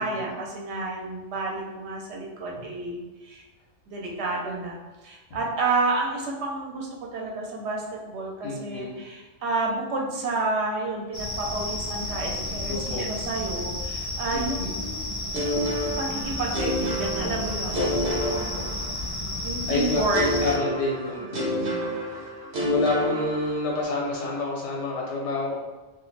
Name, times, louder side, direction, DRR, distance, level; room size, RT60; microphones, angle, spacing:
voice 1, 0.0-3.4 3.9-15.0 15.4-17.8 19.4-20.5 21.2-21.9, right 3 dB, 75° right, -1 dB, 0.8 m, -30 dB
voice 2, 8.4-9.0 12.7-13.0 14.3-14.7 17.8-18.9 19.7-21.6 22.1-22.2 22.6-25.6, left 2 dB, 80° left, -2 dB, 1.0 m, -29 dB
sound 1, 11.1-20.6, left 1 dB, 35° left, 0.6 m, -32 dB
sound 2, 15.3-19.3 20.1-24.0, equal, 50° right, 0.6 m, -30 dB
2.4 x 2.4 x 3.1 m, 1.1 s
omnidirectional pair, 1.2 m